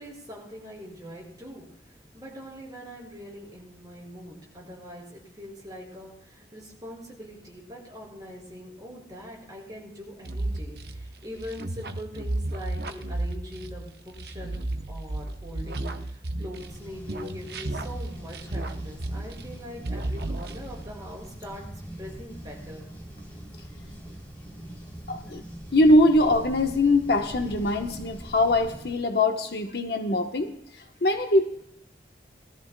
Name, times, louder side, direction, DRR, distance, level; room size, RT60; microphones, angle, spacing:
voice 1, 0.0-14.6 14.9-21.6 22.0-22.9, equal, 20° right, -3 dB, 5.1 m, -42 dB
sound 1, 10.2-16.8 17.1-19.6 19.8-20.9, right 2 dB, 60° right, 0.8 m, -33 dB
sound 2, 16.6-28.9, right 1 dB, 15° left, 2.9 m, -42 dB
voice 2, 25.1-25.4 25.7-30.5 31.0-31.4, left 1 dB, 60° left, 5 dB, 1.0 m, -22 dB
20.5 x 13.5 x 2.2 m, 0.71 s
head